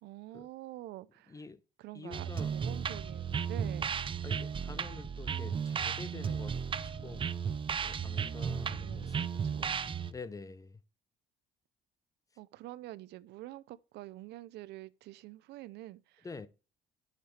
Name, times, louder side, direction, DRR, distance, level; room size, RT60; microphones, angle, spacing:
voice 1, 0.0-1.4 1.8-4.0 8.6-9.1 9.4-9.8 12.4-16.3, right 16 dB, 80° right, 0.6 m, -47 dB
voice 2, 1.3-1.6 1.9-2.5 4.2-7.3 7.8-9.8 10.1-10.8 16.2-16.5, left 4 dB, 20° left, 0.7 m, -47 dB
sound 1, 2.1-10.1, right 7 dB, 30° right, 0.6 m, -35 dB
10.0 x 6.7 x 3.2 m
cardioid pair, 110°, 17 cm